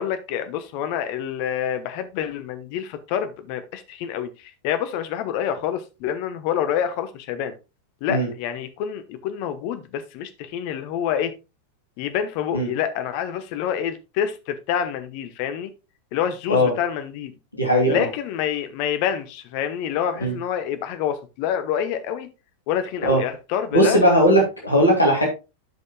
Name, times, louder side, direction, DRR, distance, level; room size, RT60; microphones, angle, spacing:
voice 1, 0.0-7.5 8.0-11.3 12.0-15.7 16.1-17.3 17.9-22.3 22.7-24.0, left 9 dB, 45° left, 1.0 m, -27 dB
voice 2, 17.6-18.1 20.2-20.3 23.0-23.2 23.7-25.3, equal, 80° left, 2.3 m, -18 dB
13.0 x 5.5 x 2.2 m
figure-of-eight pair, 90°, 0 cm